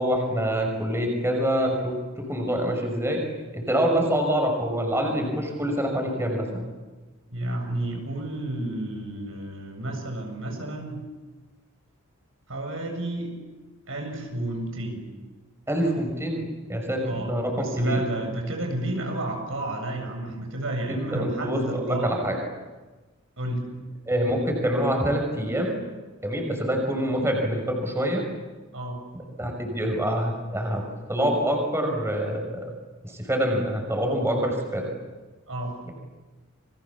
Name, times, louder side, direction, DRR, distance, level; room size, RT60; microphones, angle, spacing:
voice 1, 0.0-1.9 2.3-3.2 3.5-6.7 15.7-18.0 20.9-22.4 24.1-25.7 26.2-28.2 29.4-30.8 31.1-32.6 33.0-34.9, equal, 15° right, 2 dB, 6.1 m, -26 dB
voice 2, 7.3-11.0 12.5-13.3 13.9-15.0 17.0-22.2 23.4-23.8 28.7-29.0 35.5-35.7, right 1 dB, 70° right, 3 dB, 7.5 m, -31 dB
29.5 x 24.5 x 7.3 m, 1.2 s
head